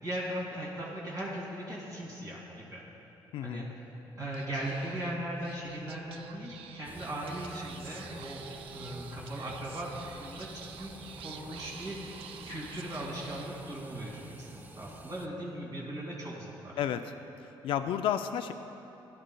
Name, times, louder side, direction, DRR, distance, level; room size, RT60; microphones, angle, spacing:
voice 1, 0.0-2.8 3.4-3.9 4.1-8.4 8.7-10.9 11.2-16.8, right 1 dB, 40° right, -4 dB, 2.4 m, -38 dB
voice 2, 3.3-3.7 16.8-17.1 17.6-18.5, left 10 dB, 70° left, 7 dB, 0.4 m, -31 dB
Speech / Whispering, 4.3-14.1, right 8 dB, 80° right, 0.5 m, -49 dB
sound 1, 6.8-15.3, right 2 dB, 20° right, 0.5 m, -48 dB
Bowed string instrument, 7.8-13.3, equal, ahead, 1.5 m, -54 dB
16.5 x 11.5 x 2.3 m, 3.0 s
cardioid pair, 115°, 9 cm